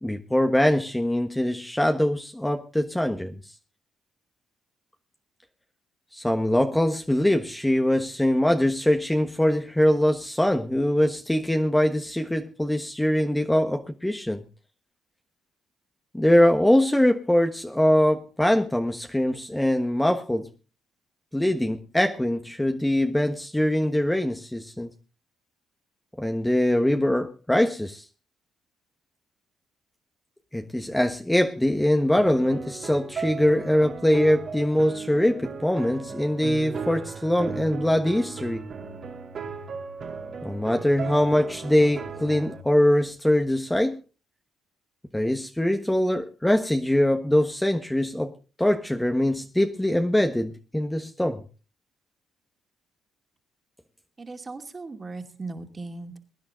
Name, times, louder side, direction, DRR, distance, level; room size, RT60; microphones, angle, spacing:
voice 1, 0.0-3.4 6.1-14.4 16.1-20.5 21.3-24.9 26.2-28.0 30.5-38.7 40.4-44.0 45.1-48.3 48.6-51.4, left 1 dB, 5° left, 5 dB, 1.3 m, -23 dB
sound 1, 32.2-42.6, right 5 dB, 55° right, 2.7 m, -36 dB
voice 2, 54.2-56.2, right 3 dB, 30° right, 5 dB, 2.6 m, -38 dB
22.0 x 10.5 x 3.9 m, 0.35 s
cardioid pair, 90°, 0 cm